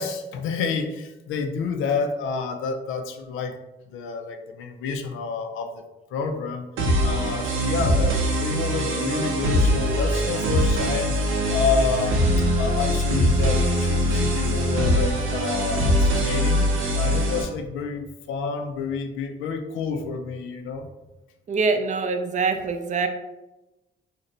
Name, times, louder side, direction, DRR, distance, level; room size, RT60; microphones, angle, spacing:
voice 1, 0.0-3.5 3.9-5.8 6.1-6.7 7.0-11.2 11.5-16.7 17.0-20.9, left 5 dB, 85° left, 6 dB, 0.4 m, -29 dB
sound 1, 6.8-17.4, equal, 85° right, 0.7 m, -22 dB
voice 2, 21.5-23.1, right 4 dB, 40° right, 7 dB, 0.4 m, -24 dB
2.6 x 2.1 x 4.0 m, 1.0 s
cardioid pair, 90°, 20 cm